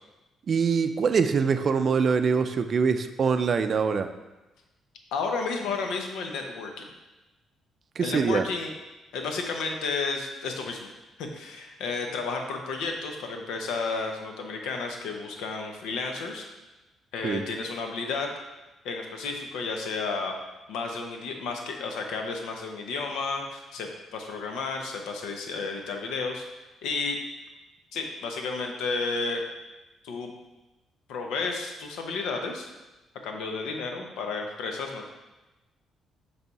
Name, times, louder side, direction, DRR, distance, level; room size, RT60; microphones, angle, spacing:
voice 1, 0.5-4.1 8.0-8.5 17.2-17.5, right 5 dB, 50° right, 9 dB, 0.4 m, -24 dB
voice 2, 5.1-6.9 8.0-8.7 9.1-10.9 11.2-16.5 17.1-18.3 18.8-20.3 20.7-26.4 26.8-27.2 27.9-29.4 30.0-30.3 31.1-32.7 33.2-35.1, left 4 dB, 90° left, 3 dB, 0.8 m, -32 dB
6.8 x 3.4 x 4.1 m, 1.1 s
cardioid pair, 90°, 0 cm